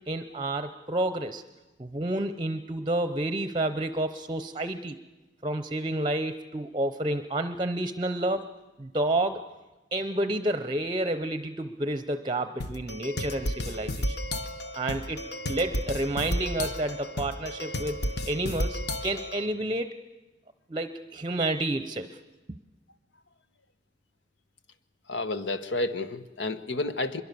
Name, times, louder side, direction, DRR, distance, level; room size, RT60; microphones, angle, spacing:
voice 1, 0.0-1.4 1.8-5.0 5.4-8.4 8.8-9.4 9.9-14.2 14.7-19.9 20.7-22.1 22.5-22.6, right 1 dB, 25° right, 10 dB, 0.7 m, -30 dB
sound 1, 12.6-19.5, left 1 dB, 65° left, 1.2 m, -33 dB
voice 2, 25.1-27.2, left 2 dB, 85° left, 11 dB, 1.2 m, -30 dB
24.5 x 22.5 x 6.9 m, 1.1 s
head